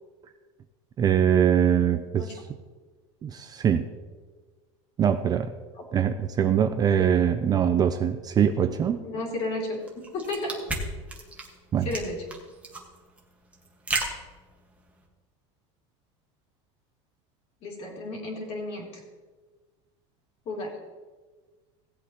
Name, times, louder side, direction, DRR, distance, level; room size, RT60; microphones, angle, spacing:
voice 1, 1.0-2.2 3.2-3.9 5.0-5.5 5.9-9.0 11.7-11.9, right 8 dB, 25° right, 9 dB, 0.5 m, -22 dB
voice 2, 9.0-10.6 11.8-12.2 17.6-19.0 20.4-20.7, left 2 dB, 40° left, -1 dB, 3.2 m, -33 dB
sound 1, 9.8-15.0, right 2 dB, 10° right, 1.6 m, -34 dB
17.0 x 8.1 x 3.0 m, 1.3 s
supercardioid pair, 140°, 16 cm